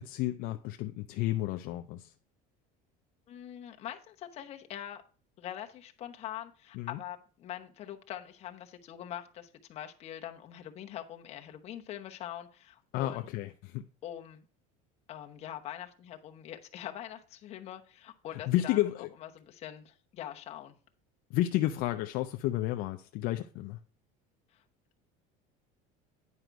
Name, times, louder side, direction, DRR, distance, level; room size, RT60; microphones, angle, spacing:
voice 1, 0.0-2.1 6.8-7.0 12.9-13.8 18.5-19.1 21.3-23.8, left 15 dB, 55° left, 0.5 m, -31 dB
voice 2, 3.3-5.0 5.4-13.2 14.0-14.4 15.1-18.8 19.2-20.7 24.5-24.6, left 11 dB, 35° left, 0.9 m, -43 dB
9.7 x 5.1 x 4.6 m
cardioid pair, 160°, 18 cm